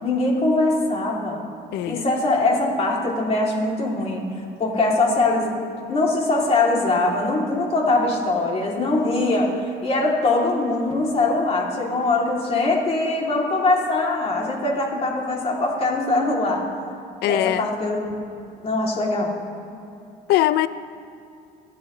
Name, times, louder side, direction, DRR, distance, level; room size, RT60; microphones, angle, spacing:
voice 1, 0.0-1.4 1.8-4.2 4.6-5.5 5.9-16.6 17.3-18.1 18.6-19.3, left 2 dB, 40° left, -2 dB, 3.1 m, -22 dB
voice 2, 1.7-2.0 17.2-17.7 20.3-20.7, left 14 dB, 80° left, 14 dB, 0.5 m, -20 dB
24.0 x 9.9 x 3.3 m, 2.6 s
cardioid pair, 110°, 17 cm